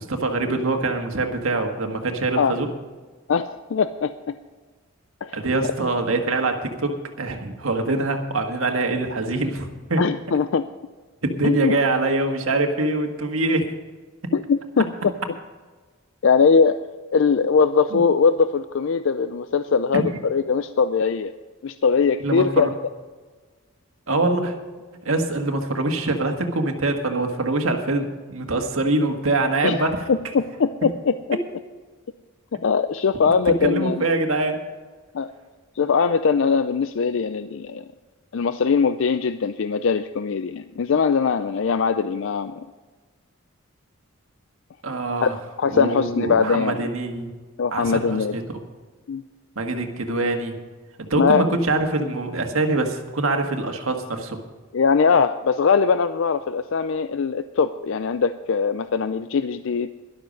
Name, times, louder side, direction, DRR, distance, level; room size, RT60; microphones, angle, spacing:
voice 1, 0.0-2.7 5.3-10.0 11.2-13.7 14.2-14.3 17.9-18.0 19.9-20.1 22.2-22.7 24.1-24.5 24.9-30.0 33.5-34.6 44.8-45.4 45.7-47.3 47.7-48.4 49.5-50.6 51.0-54.4, right 2 dB, 85° right, 4 dB, 1.7 m, -24 dB
voice 2, 3.3-4.4 5.2-5.4 10.0-10.7 11.4-11.8 14.3-15.1 16.2-16.9 17.1-21.3 21.6-22.7 29.6-29.8 30.1-31.4 32.5-34.1 35.1-35.3 35.8-37.8 38.3-42.7 45.2-45.3 45.6-46.9 47.6-48.4 49.1-49.2 51.2-51.4 54.7-59.9, left 5 dB, 65° left, 11 dB, 0.4 m, -21 dB
12.5 x 12.0 x 5.3 m, 1.4 s
head